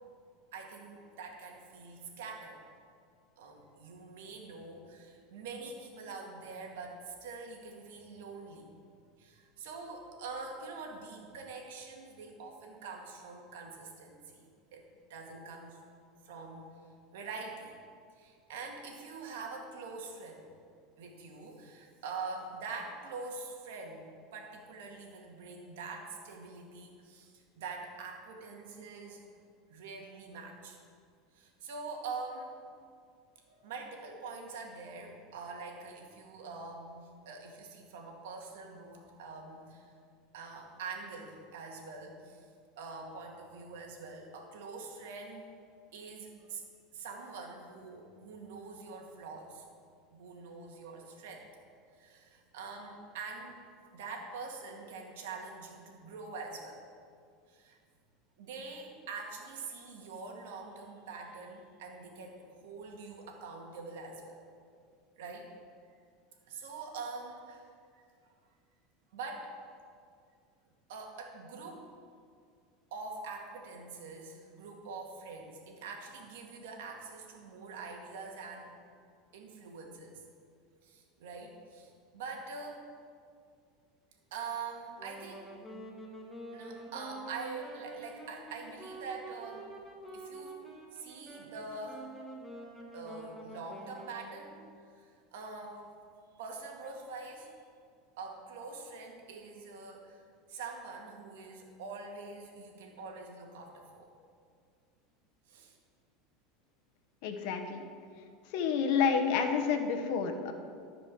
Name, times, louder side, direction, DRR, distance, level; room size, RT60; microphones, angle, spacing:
voice 1, 0.5-2.6 3.4-8.7 9.2-14.5 14.7-14.8 15.1-15.8 16.2-16.7 17.1-17.7 18.2-20.4 21.0-29.3 29.7-30.8 31.3-32.5 33.5-39.9 40.3-42.4 42.8-45.5 45.9-46.6 46.9-49.6 50.1-51.4 52.0-53.6 53.9-56.8 57.5-57.8 58.4-64.4 65.2-65.5 66.5-67.7 69.1-69.5 70.9-71.9 72.9-78.7 79.3-80.2 80.8-82.8 84.3-85.5 86.5-89.7 90.1-90.6 90.9-92.1 92.9-94.6 95.0-95.8 96.4-97.5 98.2-100.2 100.5-104.1 105.5-105.7, right 4 dB, 85° right, 1 dB, 2.0 m, -44 dB
Wind instrument woodwind instrument, 84.9-94.6, right 2 dB, ahead, 1.6 m, -47 dB
voice 2, 107.2-107.8 108.5-110.5, left 6 dB, 65° left, 5 dB, 1.2 m, -29 dB
13.5 x 5.2 x 6.3 m, 2.2 s
supercardioid pair, 130°, 0 cm